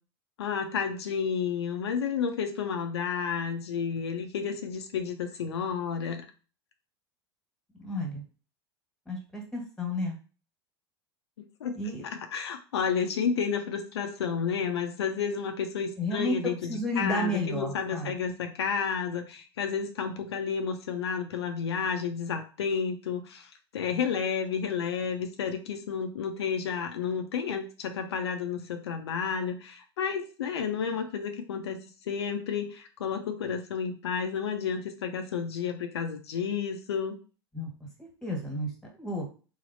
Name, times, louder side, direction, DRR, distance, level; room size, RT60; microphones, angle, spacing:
voice 1, 0.4-6.2 11.6-37.2, left 6 dB, 80° left, 6 dB, 0.4 m, -31 dB
voice 2, 7.8-8.2 9.1-10.2 11.8-12.0 16.0-18.1 37.5-37.7 38.0-38.7 38.9-39.2, left 1 dB, 5° left, 0 dB, 1.3 m, -32 dB
3.3 x 2.0 x 2.5 m, 0.36 s
hypercardioid pair, 85°, 14 cm